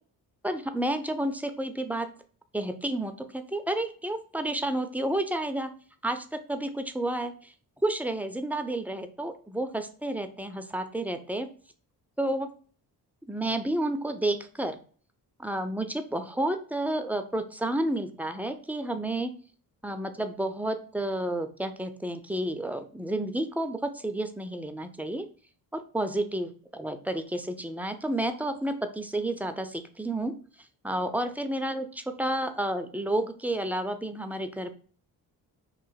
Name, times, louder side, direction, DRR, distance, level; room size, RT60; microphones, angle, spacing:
voice 1, 0.4-2.1 2.5-5.7 6.0-7.5 7.8-11.5 12.2-12.5 13.3-14.8 15.4-19.3 19.8-25.3 25.7-30.3 30.8-34.7, right 1 dB, 5° right, 7 dB, 0.3 m, -31 dB
3.0 x 2.5 x 3.9 m, 0.43 s
hypercardioid pair, 45°, 47 cm